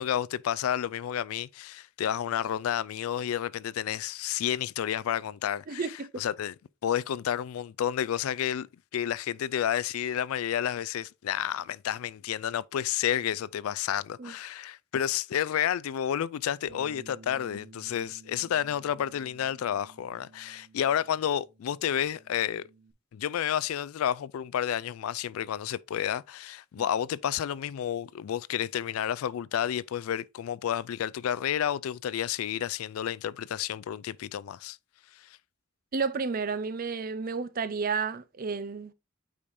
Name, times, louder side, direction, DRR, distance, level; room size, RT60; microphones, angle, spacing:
voice 1, 0.0-6.6 6.8-8.7 8.9-22.6 23.1-34.8 35.1-35.4, left 10 dB, 85° left, 0.3 m, -30 dB
voice 2, 5.7-6.1 14.2-14.3 35.9-38.9, right 5 dB, 45° right, 0.5 m, -31 dB
Bass guitar, 16.7-22.9, right 3 dB, 60° right, 1.1 m, -54 dB
8.6 x 4.9 x 2.6 m
head